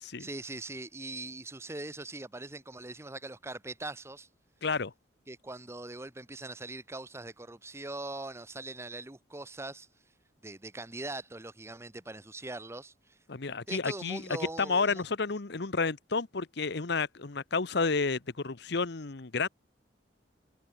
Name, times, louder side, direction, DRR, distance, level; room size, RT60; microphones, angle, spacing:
voice 1, 0.2-4.3 5.3-9.9 10.4-13.2 13.7-15.0, right 2 dB, 15° right, 0.9 m, -41 dB
voice 2, 4.6-4.9 13.3-14.2 14.6-19.5, left 4 dB, 60° left, 1.0 m, -31 dB
head